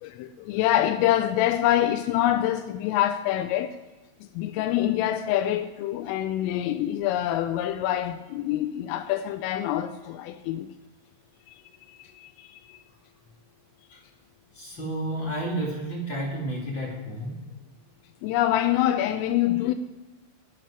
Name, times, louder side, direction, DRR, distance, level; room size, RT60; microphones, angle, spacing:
voice 1, 0.0-3.7 4.3-10.7 12.2-12.8 18.2-19.7, left 12 dB, 85° left, 3.2 m, -25 dB
voice 2, 14.5-17.4, right 1 dB, 40° left, 1.9 m, -31 dB
12.5 x 11.0 x 4.9 m
omnidirectional pair, 5.8 m